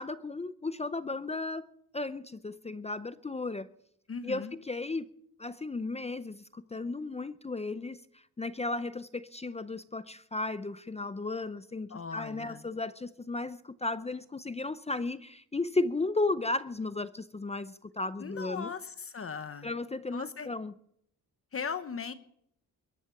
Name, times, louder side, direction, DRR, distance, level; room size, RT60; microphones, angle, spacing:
voice 1, 0.0-1.7 1.9-3.7 4.2-5.1 5.4-18.7 19.6-20.7, left 3 dB, 15° left, 0.5 m, -35 dB
voice 2, 4.1-4.5 11.9-12.7 18.2-19.7 20.1-20.5 21.5-22.1, left 6 dB, 35° left, 1.0 m, -38 dB
22.0 x 10.0 x 5.9 m
cardioid pair, 125°, 40 cm